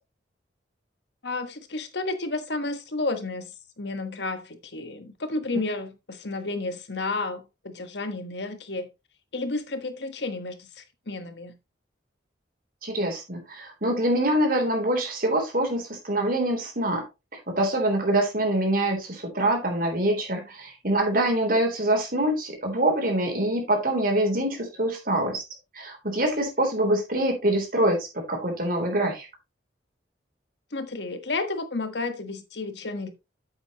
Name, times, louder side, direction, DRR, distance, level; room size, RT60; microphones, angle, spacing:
voice 1, 1.2-8.9 9.3-11.5 30.7-33.1, left 3 dB, 65° left, 1.4 m, -32 dB
voice 2, 12.8-17.0 17.6-25.4 25.7-29.3, right 1 dB, 50° right, 3.5 m, -25 dB
8.6 x 8.6 x 3.0 m
head